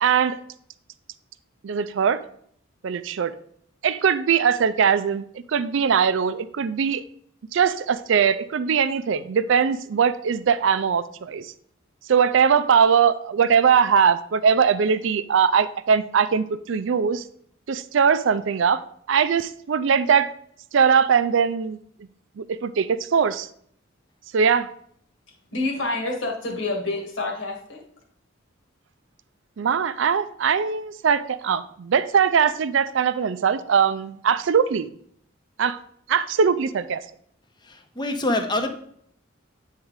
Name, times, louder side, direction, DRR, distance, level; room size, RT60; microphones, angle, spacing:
voice 1, 0.0-0.4 1.6-2.2 2.8-3.3 3.8-7.0 7.5-11.5 12.1-17.2 17.7-18.8 19.1-20.3 20.7-21.8 22.4-23.5 24.3-24.7 29.6-34.9 35.6-35.8 36.1-37.0, right 6 dB, 65° right, 13 dB, 0.4 m, -21 dB
voice 2, 25.5-27.8, left 2 dB, 65° left, 0 dB, 1.7 m, -28 dB
voice 3, 37.6-38.7, left 1 dB, 20° left, 5 dB, 0.8 m, -25 dB
8.8 x 3.7 x 4.7 m, 0.65 s
head